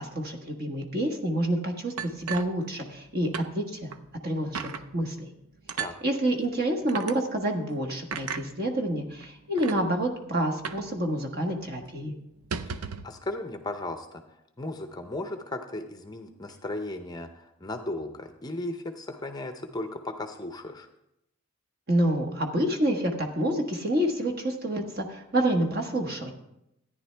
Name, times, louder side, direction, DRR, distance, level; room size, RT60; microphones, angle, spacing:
voice 1, 0.0-3.9 4.2-5.3 6.0-12.1 21.9-26.3, right 1 dB, 45° right, 2 dB, 1.4 m, -28 dB
sound 1, 2.0-3.1 3.3-3.5 3.9-4.0 4.5-4.8 5.7-6.0 6.9-7.1 8.1-8.4 9.2-9.3 9.6-9.8 10.6-10.9 11.2-11.3 11.6-11.8 12.3-13.1, right 6 dB, 90° right, 0.6 m, -35 dB
voice 2, 12.7-14.2 14.6-20.9, left 2 dB, 20° left, 6 dB, 0.6 m, -36 dB
14.0 x 9.9 x 3.3 m, 0.84 s
head